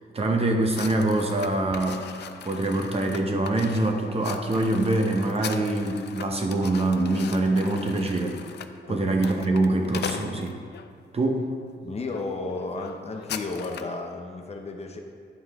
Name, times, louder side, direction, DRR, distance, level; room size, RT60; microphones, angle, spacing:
voice 1, 0.1-2.0 2.4-8.4 8.9-10.6 11.1-11.5, right 2 dB, 35° right, 2 dB, 0.8 m, -24 dB
sound 1, 0.7-10.9 11.5-11.7 12.1-12.2 12.5-14.0, left 8 dB, 70° left, 0.4 m, -40 dB
voice 2, 11.8-15.0, left 3 dB, 35° left, 3 dB, 0.7 m, -33 dB
9.6 x 5.5 x 3.5 m, 2.2 s
wide cardioid pair, 120°, 18 cm